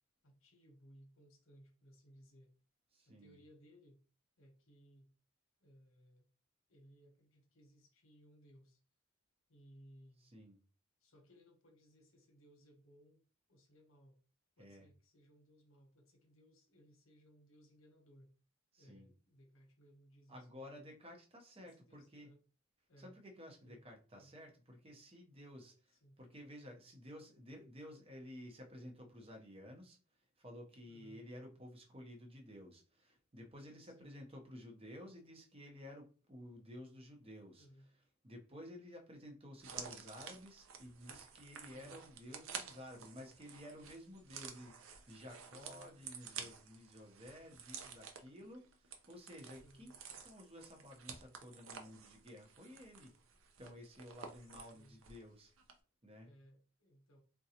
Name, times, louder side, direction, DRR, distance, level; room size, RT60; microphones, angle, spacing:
voice 1, 0.2-2.5 3.1-4.0 4.4-5.1 5.6-6.3 6.7-8.8 9.5-10.3 11.0-14.2 14.6-18.3 18.8-20.9 21.5-22.4 22.9-23.2 23.6-23.8 24.2-24.3 25.9-26.2 30.9-31.2 33.8-34.2 37.6-37.9 41.7-42.0 44.3-44.7 45.5-45.9 49.6-49.9 54.4-55.0 56.2-57.2, equal, 70° left, 0.9 m, -64 dB
voice 2, 2.9-3.4 10.3-10.6 14.6-14.9 18.7-19.1 20.3-22.3 23.0-30.0 30.4-37.7 38.2-49.9 50.2-53.1 53.6-55.5 56.0-56.3, left 1 dB, 25° right, 0.8 m, -53 dB
sound 1, 39.6-55.3 55.6-55.7, right 6 dB, 70° right, 0.5 m, -51 dB
3.8 x 2.2 x 2.8 m
head